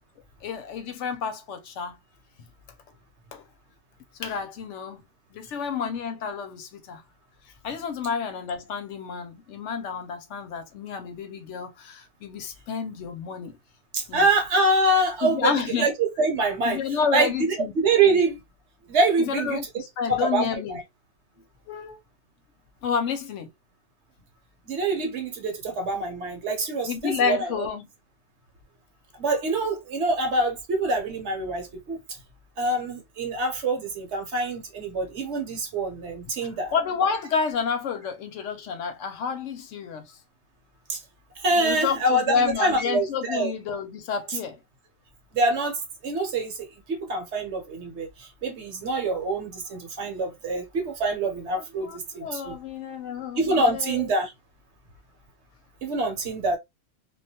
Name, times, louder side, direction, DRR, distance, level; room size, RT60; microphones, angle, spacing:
voice 1, 0.4-2.0 3.3-3.4 4.2-5.0 5.3-7.0 7.6-13.6 14.1-14.3 15.2-15.9 16.6-17.7 19.2-20.8 21.7-22.0 22.8-23.5 26.9-27.9 36.4-40.1 41.6-44.6 51.8-54.1, left 6 dB, 75° left, 0.9 m, -30 dB
voice 2, 13.9-18.4 18.9-19.6 20.1-20.8 24.6-27.6 29.2-32.0 32.6-36.7 40.9-41.0 41.4-43.5 44.3-44.4 45.3-52.6 53.4-54.3 55.8-56.6, right 2 dB, 65° right, 1.0 m, -25 dB
2.3 x 2.2 x 2.7 m
omnidirectional pair, 1.3 m